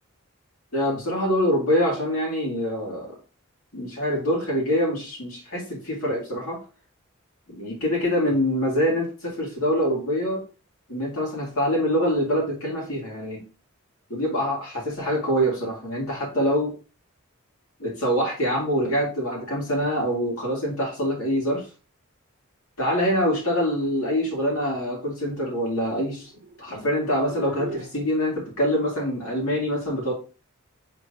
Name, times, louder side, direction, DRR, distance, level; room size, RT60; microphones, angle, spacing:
voice 1, 0.7-3.1 3.7-6.6 7.5-10.4 10.9-13.4 14.1-16.7 17.8-21.7 22.8-26.3 26.6-30.1, equal, 85° left, -3 dB, 2.3 m, -25 dB
sound 1, 25.1-28.1, right 2 dB, 55° right, 0.7 m, -40 dB
5.0 x 3.8 x 2.6 m, 0.36 s
head